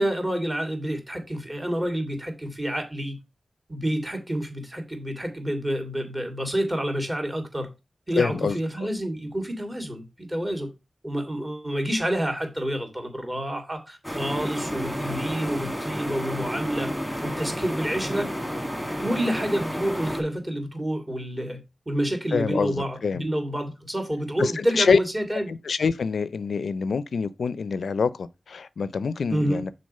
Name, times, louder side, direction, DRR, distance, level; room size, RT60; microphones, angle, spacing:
voice 1, 0.0-3.2 3.7-7.7 8.1-10.7 11.0-16.9 17.2-18.3 19.0-21.6 21.9-25.5 29.3-29.6, equal, 20° right, 2.3 m, -28 dB
voice 2, 8.2-8.9 22.3-23.2 24.4-25.0 25.5-29.7, left 5 dB, 80° left, 0.4 m, -25 dB
sound 1, 14.0-20.2, equal, 5° left, 2.0 m, -31 dB
6.3 x 4.2 x 5.4 m
wide cardioid pair, 80°, 0 cm